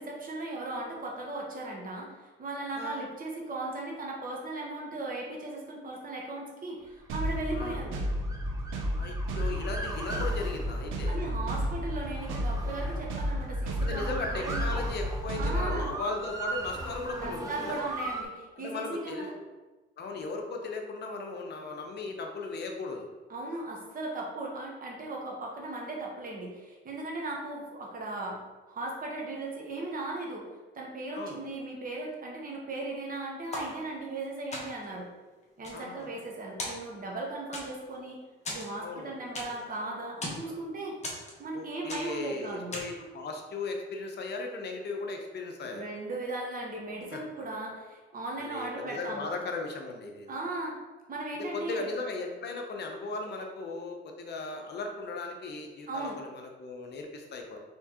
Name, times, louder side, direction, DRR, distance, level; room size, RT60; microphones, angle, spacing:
voice 1, 0.0-8.0 11.1-14.7 15.3-15.9 17.2-19.3 23.3-28.4 28.7-30.5 30.7-35.1 35.6-38.2 38.5-41.0 41.4-42.7 45.6-49.3 50.3-50.7 51.1-51.8 55.9-56.2, right 2 dB, 45° right, -1 dB, 1.1 m, -37 dB
sound 1, 7.1-15.9, equal, 90° right, 0.6 m, -32 dB
Motor vehicle (road) / Siren, 7.2-18.2, right 2 dB, 15° right, 0.7 m, -40 dB
voice 2, 8.9-11.2 13.8-17.8 18.6-19.3 20.0-23.1 31.1-31.4 35.7-36.1 38.8-39.1 40.4-40.5 41.5-45.9 47.1-47.2 48.4-50.3 51.5-57.6, left 3 dB, 55° left, 3 dB, 0.7 m, -37 dB
sound 2, 33.5-34.2 34.5-35.0 35.4-36.3 36.6-37.2 37.5-38.0 38.4-39.7 40.0-40.5 41.0-41.6 41.9-42.3 42.7-43.1, left 1 dB, 35° left, 1.2 m, -39 dB
4.3 x 3.5 x 2.9 m, 1.2 s
cardioid pair, 90°, 20 cm